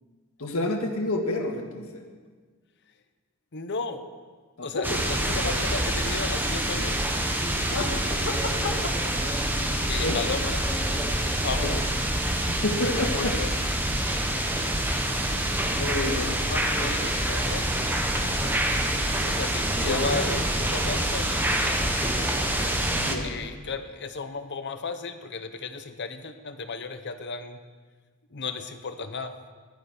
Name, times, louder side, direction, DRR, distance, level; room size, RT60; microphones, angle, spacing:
voice 1, 0.4-2.0 4.6-5.0 7.7-9.1 9.4-10.2 11.4-11.8 12.5-13.4 15.8-16.3 19.8-20.1 22.9-23.3, left 2 dB, 75° left, 3 dB, 1.7 m, -30 dB
voice 2, 3.5-4.0 4.6-7.0 9.9-10.6 11.4-11.7 12.8-13.5 16.1-17.6 19.2-21.9 23.2-27.6 28.3-29.3, left 4 dB, 50° left, 9 dB, 0.9 m, -34 dB
sound 1, 4.8-23.2, right 1 dB, 10° right, 1.0 m, -26 dB
15.5 x 11.5 x 5.0 m, 1.5 s
head